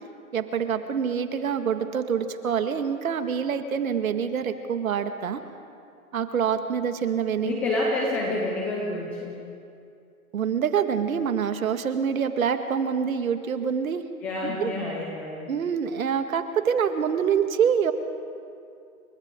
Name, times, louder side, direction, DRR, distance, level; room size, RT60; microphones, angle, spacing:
voice 1, 0.3-5.4 6.1-7.5 10.3-14.0 14.4-14.7 15.5-17.9, right 7 dB, 70° right, 8 dB, 2.0 m, -26 dB
voice 2, 7.4-9.4 14.2-15.5, left 2 dB, 5° left, -3 dB, 0.4 m, -28 dB
30.0 x 25.5 x 3.8 m, 2.4 s
hypercardioid pair, 140°, 43 cm